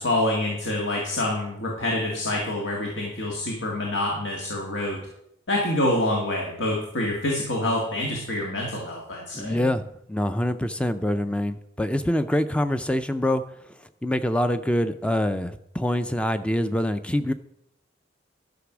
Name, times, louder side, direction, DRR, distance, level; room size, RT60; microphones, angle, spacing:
voice 1, 0.0-5.0 5.5-9.7, left 1 dB, 75° left, -2 dB, 1.9 m, -26 dB
voice 2, 9.3-13.4 14.0-17.3, left 1 dB, 5° left, 11 dB, 0.4 m, -25 dB
11.5 x 6.0 x 6.0 m, 0.80 s
head